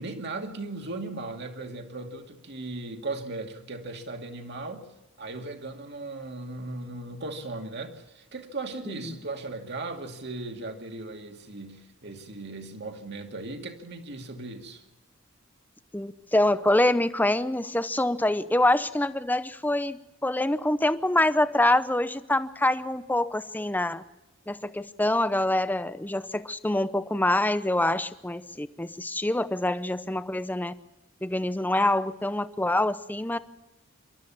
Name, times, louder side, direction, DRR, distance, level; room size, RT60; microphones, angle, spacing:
voice 1, 0.0-4.9 5.2-14.8, right 2 dB, 55° right, 4 dB, 2.4 m, -37 dB
voice 2, 15.9-24.0 24.5-30.7 31.2-33.4, left 1 dB, 10° left, 13 dB, 0.7 m, -25 dB
27.5 x 13.0 x 7.2 m, 1.1 s
head